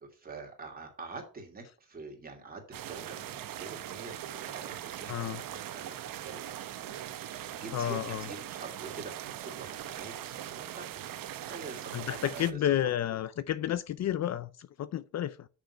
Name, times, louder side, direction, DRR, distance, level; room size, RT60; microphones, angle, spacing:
voice 1, 0.1-4.1 4.4-6.5 7.5-12.6, right 3 dB, 25° right, 2.6 m, -46 dB
sound 1, 2.7-12.5, right 11 dB, 85° right, 0.9 m, -41 dB
voice 2, 5.1-5.4 7.7-8.3 11.9-15.5, left 11 dB, 55° left, 0.5 m, -31 dB
6.6 x 6.4 x 5.4 m
wide cardioid pair, 150°, 33 cm